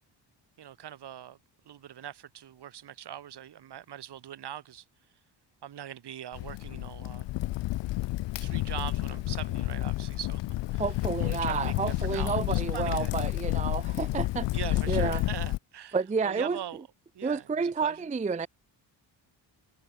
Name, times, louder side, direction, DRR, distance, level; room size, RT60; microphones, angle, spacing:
voice 1, 0.6-1.4 1.6-4.8 5.6-7.3 8.3-10.4 10.7-10.8 11.2-13.1 14.5-16.0 16.2-16.8 17.1-18.1, right 10 dB, 60° right, 1.7 m, -41 dB
Crackle, 6.3-15.6, left 17 dB, 75° left, 0.5 m, -30 dB
voice 2, 10.8-14.5 14.9-15.2 15.9-16.6 17.2-18.5, right 5 dB, 15° right, 0.5 m, -30 dB
wide cardioid pair, 140°, 44 cm